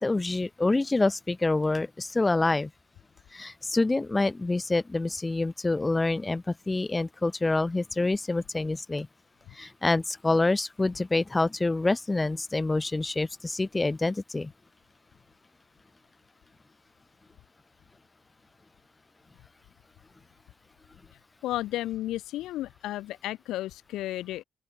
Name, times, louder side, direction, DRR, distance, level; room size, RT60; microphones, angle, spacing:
voice 1, 0.0-2.7 3.3-9.1 9.5-14.5, left 2 dB, 20° left, 0.7 m, -27 dB
voice 2, 21.4-24.4, left 15 dB, 90° left, 1.3 m, -33 dB
open air
cardioid pair, 90°, 0 cm